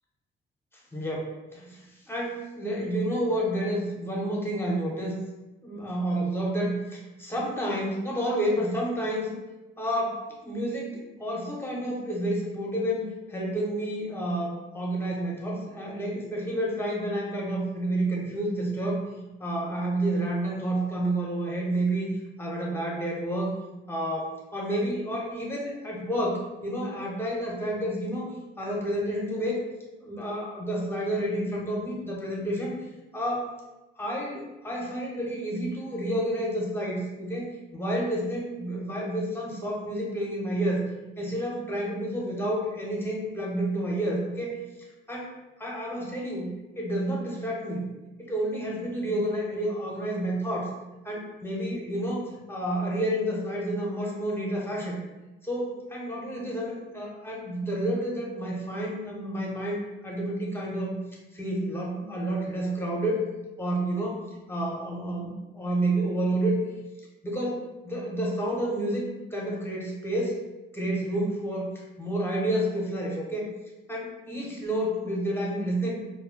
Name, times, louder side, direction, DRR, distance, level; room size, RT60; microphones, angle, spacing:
voice 1, 0.9-5.2 5.6-9.3 9.8-10.2 10.4-19.0 19.4-22.1 22.4-23.5 23.9-29.6 30.0-32.8 33.1-33.5 34.0-40.8 41.2-44.6 45.1-45.3 45.6-46.5 46.8-47.8 48.2-50.7 51.0-55.0 55.4-61.0 61.3-63.2 63.6-64.2 64.5-66.6 67.2-69.0 69.3-70.4 70.7-71.7 72.0-73.5 73.9-76.0, right 1 dB, 10° left, -3 dB, 0.8 m, -30 dB
2.2 x 2.0 x 3.7 m, 1.0 s
cardioid pair, 90°, 20 cm